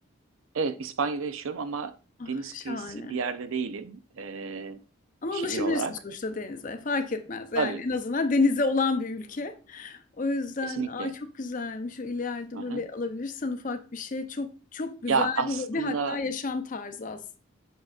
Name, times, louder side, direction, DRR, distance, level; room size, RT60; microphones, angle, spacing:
voice 1, 0.5-1.9 2.3-4.8 5.3-5.9 7.5-7.8 10.7-11.1 12.5-12.8 15.1-16.2, right 5 dB, 70° right, 0.5 m, -31 dB
voice 2, 2.2-3.2 5.2-17.4, left 3 dB, 35° left, 0.5 m, -30 dB
6.5 x 6.3 x 2.4 m
head